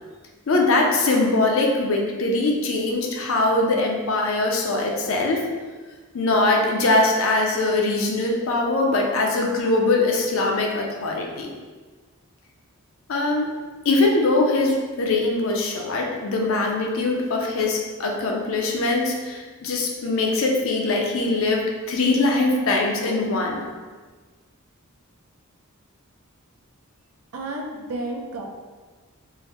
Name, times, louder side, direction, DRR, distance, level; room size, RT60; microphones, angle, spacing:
voice 1, 0.5-5.4 6.1-11.5 13.1-13.5 13.8-23.6, left 2 dB, 65° left, 0 dB, 0.5 m, -22 dB
voice 2, 27.3-28.4, right 2 dB, 85° right, 0 dB, 0.5 m, -31 dB
3.7 x 2.1 x 3.0 m, 1.4 s
head